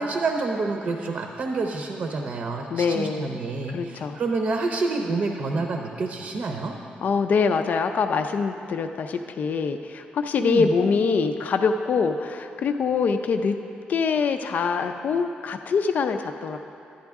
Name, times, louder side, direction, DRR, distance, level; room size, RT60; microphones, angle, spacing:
voice 1, 0.0-6.7 10.4-10.7, right 3 dB, 55° right, 2 dB, 0.7 m, -28 dB
voice 2, 2.7-3.4 3.7-4.2 7.0-13.6 13.9-16.6, left 5 dB, 55° left, 6 dB, 0.4 m, -24 dB
11.0 x 10.0 x 3.5 m, 2.7 s
cardioid pair, 120°, 3 cm